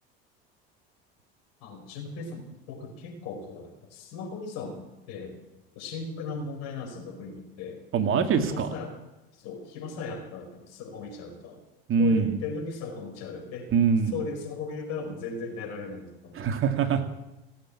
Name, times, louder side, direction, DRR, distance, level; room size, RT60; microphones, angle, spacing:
voice 1, 1.6-5.4 5.7-7.8 8.3-8.9 9.3-11.6 12.0-13.7 14.1-16.4, left 4 dB, 65° left, 2 dB, 4.9 m, -37 dB
voice 2, 7.9-8.7 11.9-12.3 13.7-14.1 16.4-17.0, right 6 dB, 45° right, 6 dB, 2.4 m, -23 dB
17.5 x 8.4 x 8.8 m, 1.0 s
hypercardioid pair, 75°, 29 cm